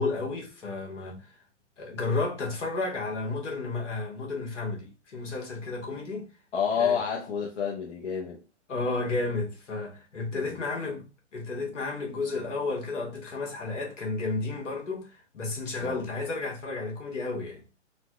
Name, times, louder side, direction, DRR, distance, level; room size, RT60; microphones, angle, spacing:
voice 1, 0.0-1.3 1.8-6.3 6.8-7.0 8.7-11.0 11.3-17.6, left 3 dB, 80° left, 1.5 m, -32 dB
voice 2, 6.5-8.4 10.3-10.6 15.8-16.0, left 7 dB, 65° left, 0.8 m, -29 dB
4.0 x 2.2 x 2.3 m
hypercardioid pair, 130°, 36 cm